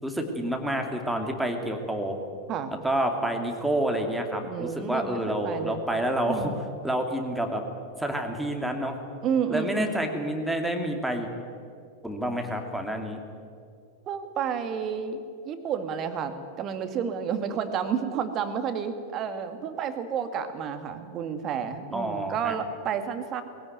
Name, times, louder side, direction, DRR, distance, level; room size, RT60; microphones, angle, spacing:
voice 1, 0.0-2.2 2.8-6.5 6.8-7.6 8.0-9.0 9.5-11.3 12.0-13.2 21.9-22.6, right 1 dB, ahead, 3 dB, 2.7 m, -28 dB
voice 2, 4.4-5.8 6.3-6.5 9.2-10.1 14.1-23.4, right 7 dB, 35° right, 9 dB, 2.0 m, -31 dB
20.5 x 17.0 x 9.5 m, 2.3 s
figure-of-eight pair, 90°, 0 cm